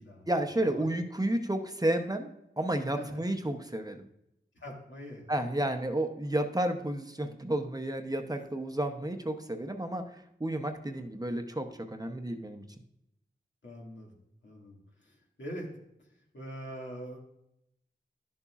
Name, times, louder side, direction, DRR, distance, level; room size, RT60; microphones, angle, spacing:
voice 1, 0.3-4.1 5.3-12.6, right 1 dB, 20° right, 6 dB, 0.7 m, -31 dB
voice 2, 4.6-5.6 13.6-14.1 14.4-14.8 15.0-15.7 16.3-17.2, equal, 80° left, -2 dB, 2.2 m, -43 dB
11.5 x 6.9 x 2.4 m, 0.81 s
wide cardioid pair, 65°, 19 cm